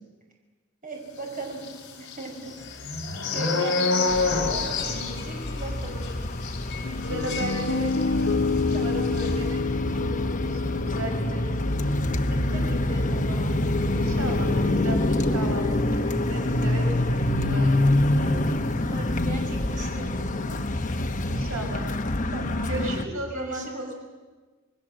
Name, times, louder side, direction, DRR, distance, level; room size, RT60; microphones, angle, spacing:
voice 1, 0.8-1.6 2.0-2.5 3.3-6.1 8.7-9.2 12.1-13.6 14.7-14.8 18.7-20.6 22.3-22.9 23.3-23.9, right 2 dB, 40° right, 1 dB, 6.0 m, -38 dB
sound 1, 1.6-8.3 8.6-8.8 9.0-9.3, left 3 dB, 55° left, 4.4 m, -29 dB
voice 2, 3.2-3.8 7.0-9.6 9.9-11.8 13.9-17.9 18.2-18.5 21.3-21.8 22.7-23.9, right 1 dB, 90° right, 2 dB, 4.6 m, -36 dB
sound 2, 4.1-23.1, left 1 dB, 40° left, 1.2 m, -26 dB
Piano, 6.8-14.9, left 4 dB, 80° left, 0.8 m, -30 dB
27.5 x 20.5 x 7.6 m, 1.3 s
head